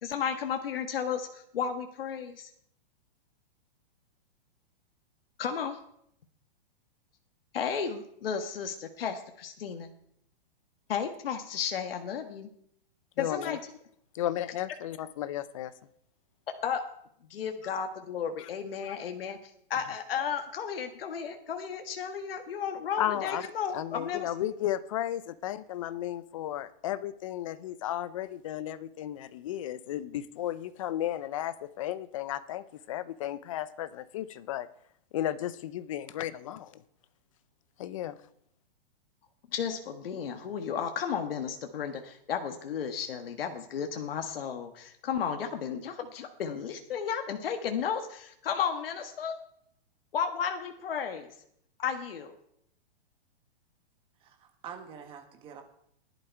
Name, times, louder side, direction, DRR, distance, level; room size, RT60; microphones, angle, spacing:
voice 1, 0.0-2.5 5.4-5.8 7.5-9.9 10.9-12.5 13.2-13.6 16.6-16.8 17.3-19.4 19.7-24.3 39.5-49.4 50.1-51.3 51.8-52.3, left 7 dB, 70° left, 6 dB, 1.5 m, -33 dB
voice 2, 13.2-13.6 14.1-15.7 18.4-18.5 23.0-23.5 23.7-34.7 35.1-36.7 37.8-38.1, left 12 dB, 35° left, 15 dB, 0.6 m, -34 dB
voice 3, 54.2-55.6, right 7 dB, 15° right, 5 dB, 1.3 m, -46 dB
15.5 x 11.0 x 4.6 m, 0.71 s
hypercardioid pair, 165°, 29 cm